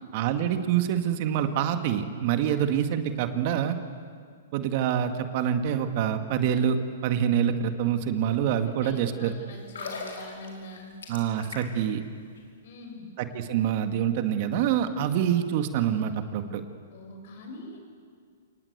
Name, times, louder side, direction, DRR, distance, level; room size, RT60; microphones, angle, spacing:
voice 1, 0.1-3.8 4.5-6.8 7.0-9.3 11.1-12.0 13.2-16.6, right 9 dB, 50° right, 8 dB, 1.9 m, -26 dB
voice 2, 8.8-11.0 12.6-13.1 16.9-17.8, left 2 dB, 55° left, 2 dB, 7.4 m, -43 dB
sound 1, 9.6-11.9 12.2-12.4, left 3 dB, 80° left, 5.2 m, -39 dB
28.5 x 19.0 x 8.2 m, 2.1 s
hypercardioid pair, 125°, 0 cm